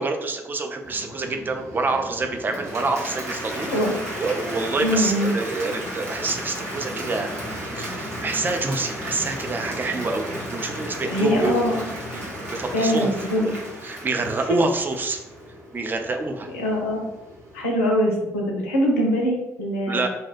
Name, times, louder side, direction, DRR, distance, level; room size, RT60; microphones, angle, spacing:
voice 1, 0.0-3.8 4.2-7.3 7.7-11.5 12.5-13.5 13.8-15.2 15.7-16.5 19.9-20.1, right 3 dB, 25° right, 4 dB, 0.3 m, -27 dB
sound 1, 0.8-17.6, equal, 40° right, 0.7 m, -38 dB
Applause, 2.4-15.4, right 1 dB, 90° right, 0.5 m, -36 dB
voice 2, 4.8-5.3 11.1-11.9 12.7-13.5 14.5-14.6 16.5-17.1 17.5-20.1, equal, 80° left, 0 dB, 0.4 m, -23 dB
2.6 x 2.0 x 2.4 m, 0.95 s
figure-of-eight pair, 45°, 8 cm